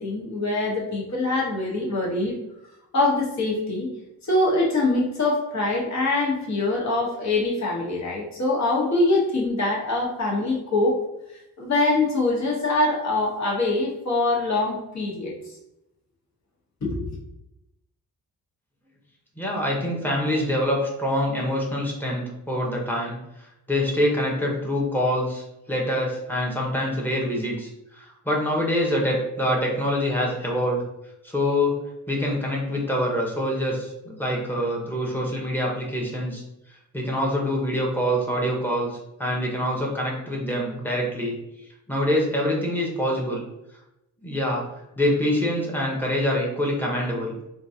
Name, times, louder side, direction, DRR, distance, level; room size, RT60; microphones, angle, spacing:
voice 1, 0.0-2.4 2.9-3.9 4.2-11.0 11.6-15.3 16.8-17.0, left 2 dB, 45° left, -2 dB, 1.2 m, -24 dB
voice 2, 19.4-23.2 23.7-30.8 31.2-31.8 32.1-33.9 34.2-36.4 36.9-41.4 41.9-43.4 44.2-44.7 45.0-47.3, equal, 5° left, -3 dB, 0.9 m, -25 dB
3.7 x 2.5 x 2.8 m, 0.89 s
cardioid pair, 110°, 38 cm